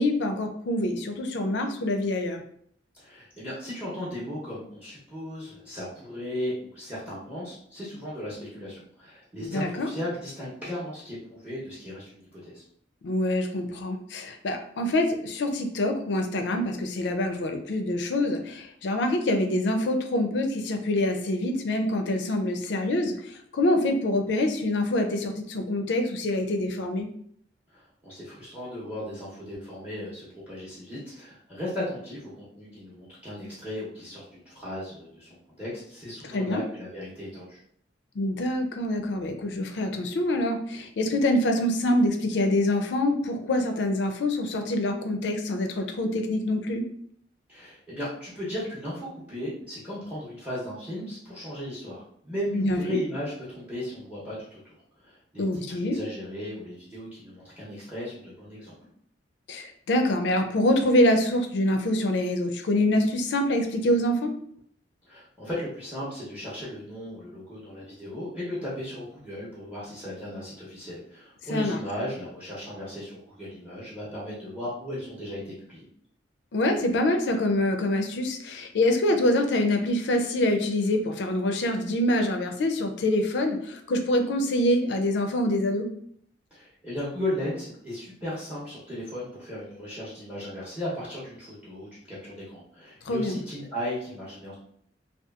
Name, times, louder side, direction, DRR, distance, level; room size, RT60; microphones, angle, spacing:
voice 1, 0.0-2.4 9.4-9.9 13.0-27.1 36.3-36.6 38.2-46.8 52.5-53.0 55.4-56.0 59.5-64.3 71.5-71.8 76.5-85.9 93.0-93.4, left 1 dB, 65° left, 5 dB, 0.4 m, -25 dB
voice 2, 2.9-12.6 27.7-37.6 47.5-55.6 55.9-58.8 65.1-75.9 86.5-94.5, left 1 dB, 10° right, -8 dB, 0.7 m, -36 dB
2.7 x 2.3 x 2.3 m, 0.66 s
head